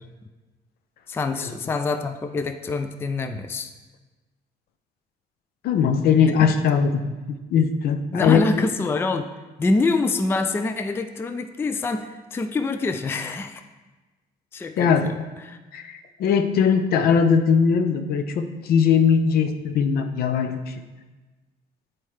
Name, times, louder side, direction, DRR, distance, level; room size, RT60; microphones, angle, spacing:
voice 1, 1.1-3.7 6.2-6.5 8.1-9.3 9.6-13.6 14.5-15.1 15.4-15.6, left 3 dB, 15° left, 8 dB, 0.3 m, -25 dB
voice 2, 5.6-7.1 7.5-8.7 14.8-15.1 15.7-20.7, left 6 dB, 65° left, 8 dB, 0.6 m, -20 dB
8.3 x 4.3 x 3.2 m, 1.2 s
cardioid pair, 110°, 17 cm